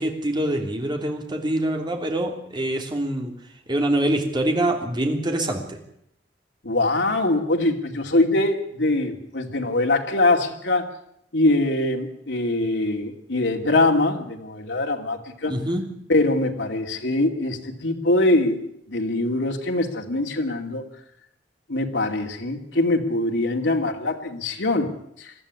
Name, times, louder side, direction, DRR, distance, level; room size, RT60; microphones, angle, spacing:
voice 1, 0.0-3.3 3.7-5.8 15.5-15.8, right 1 dB, 25° right, 3 dB, 3.2 m, -25 dB
voice 2, 6.6-10.9 11.3-15.6 16.1-20.8 21.7-24.9 25.2-25.3, left 2 dB, 90° left, 2 dB, 2.5 m, -23 dB
21.0 x 13.5 x 9.7 m, 0.75 s
head